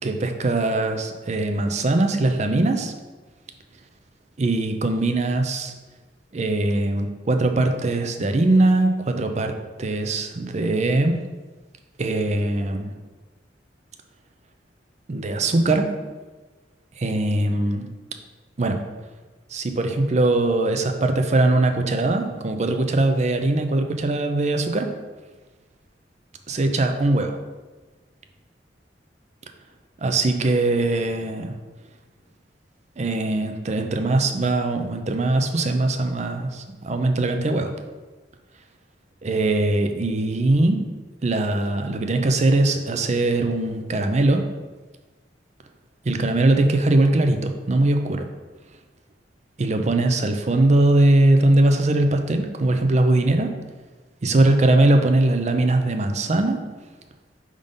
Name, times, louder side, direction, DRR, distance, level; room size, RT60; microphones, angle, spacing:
voice 1, 0.0-2.9 4.4-5.7 6.3-11.2 12.0-12.9 15.1-15.9 17.0-17.9 18.6-18.8 19.5-24.9 26.5-27.4 30.0-31.5 33.0-37.7 39.2-40.8 41.2-44.4 46.0-48.3 49.6-53.5 54.2-56.6, right 2 dB, 40° right, 6 dB, 0.5 m, -21 dB
5.1 x 3.7 x 5.3 m, 1.3 s
head